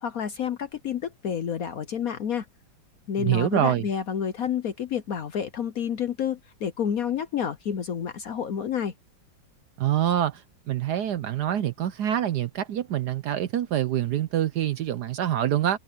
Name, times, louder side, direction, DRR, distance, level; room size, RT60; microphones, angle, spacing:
voice 1, 0.0-2.5 3.1-8.9, left 8 dB, 60° left, 1.0 m, -29 dB
voice 2, 3.2-3.8 9.8-15.8, right 11 dB, 70° right, 1.1 m, -26 dB
omnidirectional pair, 2.2 m